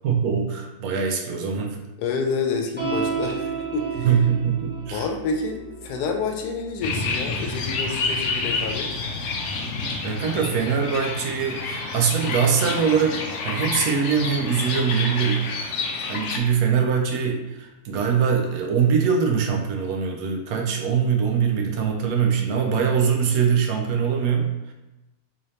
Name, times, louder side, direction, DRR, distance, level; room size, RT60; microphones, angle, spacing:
voice 1, 0.0-1.8 4.0-5.1 10.0-24.7, right 6 dB, 75° right, 2 dB, 1.0 m, -23 dB
voice 2, 2.0-4.1 4.9-8.9, left 4 dB, 85° left, 4 dB, 1.1 m, -28 dB
sound 1, 2.8-9.4, right 5 dB, 15° right, 0.4 m, -34 dB
sound 2, 6.8-16.4, left 4 dB, 65° left, 0.7 m, -29 dB
3.9 x 2.8 x 3.1 m, 0.99 s
omnidirectional pair, 1.6 m